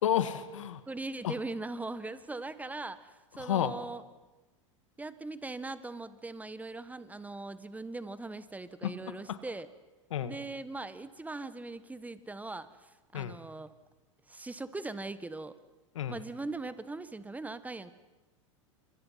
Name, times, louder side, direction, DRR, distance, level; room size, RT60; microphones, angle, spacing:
voice 1, 0.0-0.8 1.2-1.3 3.4-3.7 8.8-8.9 9.3-9.4 10.1-10.3 13.1-13.4 16.0-16.2, left 10 dB, 70° left, 12 dB, 1.9 m, -30 dB
voice 2, 0.9-4.0 5.0-9.7 10.2-13.7 14.3-15.6 16.1-17.9, right 2 dB, 10° right, 13 dB, 1.5 m, -40 dB
30.0 x 27.5 x 5.9 m, 1.2 s
hypercardioid pair, 90°, 17 cm